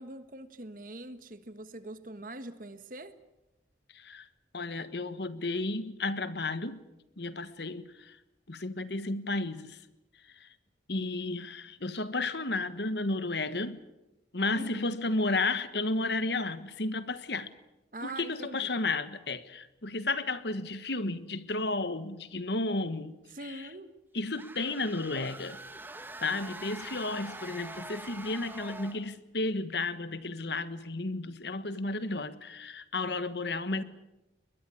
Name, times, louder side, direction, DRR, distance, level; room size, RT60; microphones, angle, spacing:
voice 1, 0.0-3.2 14.5-15.0 17.9-18.7 23.3-23.9, right 1 dB, 45° right, 1.5 m, -43 dB
voice 2, 3.9-4.3 4.5-6.8 7.2-8.2 8.5-9.8 10.4-10.5 10.9-13.8 14.3-17.5 18.0-23.1 23.4-23.7 24.1-25.6 26.2-33.8, left 2 dB, 70° left, 1.4 m, -33 dB
sound 1, 24.2-29.1, right 2 dB, 10° right, 1.3 m, -44 dB
21.5 x 21.5 x 8.6 m
head